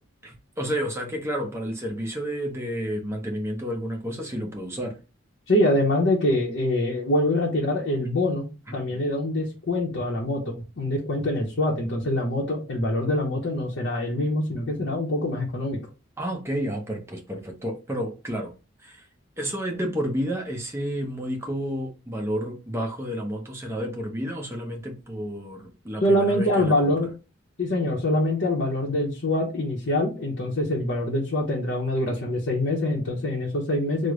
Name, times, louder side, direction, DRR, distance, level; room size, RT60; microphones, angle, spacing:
voice 1, 0.2-5.0 8.9-9.0 16.2-18.5 18.8-19.0 19.4-26.9, equal, 10° right, 0.6 m, -31 dB
voice 2, 5.5-8.5 8.7-15.8 26.0-27.1 27.6-34.1, left 1 dB, 55° left, 0.7 m, -24 dB
3.1 x 2.0 x 3.6 m
head